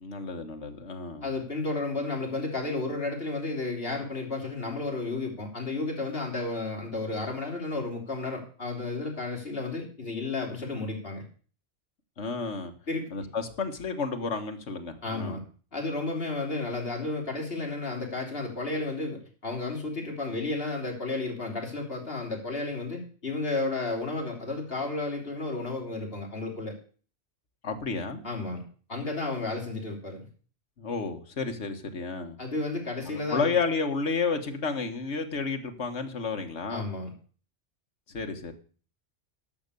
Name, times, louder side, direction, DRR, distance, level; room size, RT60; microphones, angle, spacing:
voice 1, 0.0-1.3 12.2-12.7 13.1-15.4 27.6-28.2 30.8-32.4 33.1-36.9 38.1-38.5, left 4 dB, 75° left, 5 dB, 1.8 m, -31 dB
voice 2, 1.2-11.2 12.9-13.1 15.0-15.4 15.7-26.7 28.2-28.6 28.9-30.3 32.4-33.5 36.7-37.1, left 3 dB, 55° left, 0 dB, 3.7 m, -32 dB
11.5 x 6.6 x 8.3 m, 0.41 s
omnidirectional pair, 1.2 m